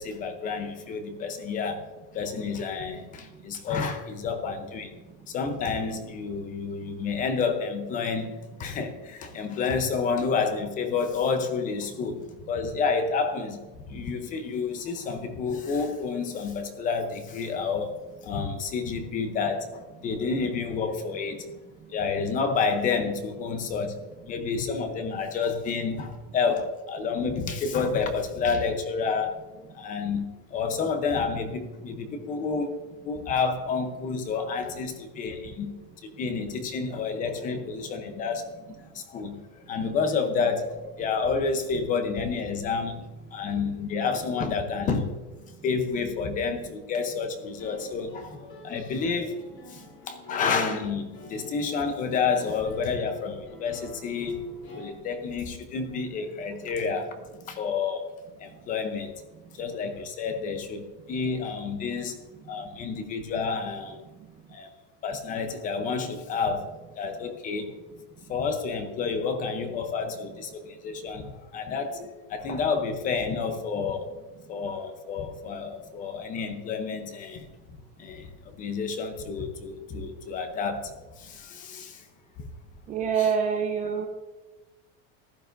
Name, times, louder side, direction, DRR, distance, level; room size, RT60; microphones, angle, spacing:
voice 1, 0.0-1.8 2.1-4.9 5.3-13.6 13.9-17.9 18.2-19.7 20.0-21.4 21.9-24.0 24.3-29.4 29.7-30.2 30.5-32.7 33.0-35.7 36.0-38.5 38.9-39.3 39.7-43.0 43.3-45.2 45.6-49.4 49.7-51.0 51.3-54.5 54.7-57.1 57.5-58.1 58.4-59.1 59.6-62.2 62.5-64.0 64.5-64.7 65.0-66.7 67.0-67.7 68.3-74.1 74.5-77.4 78.0-78.3 78.6-80.9 81.2-82.0 83.2-83.3, left 5 dB, 20° left, 8 dB, 0.7 m, -29 dB
sound 1, 47.3-54.9, left 2 dB, 35° left, 3.4 m, -49 dB
voice 2, 82.9-84.1, right 7 dB, 20° right, 3 dB, 0.6 m, -25 dB
15.0 x 11.5 x 2.6 m, 1.2 s
supercardioid pair, 175°, 39 cm